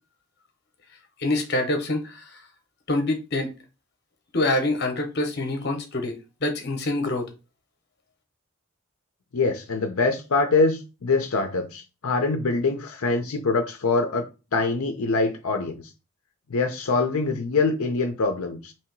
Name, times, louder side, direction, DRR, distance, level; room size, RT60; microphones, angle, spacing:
voice 1, 1.2-2.4 2.9-3.5 4.3-7.3, left 2 dB, 50° left, 0.8 m, -26 dB
voice 2, 9.3-15.8 16.5-18.7, left 3 dB, 80° left, 0.6 m, -24 dB
3.1 x 2.8 x 4.5 m
head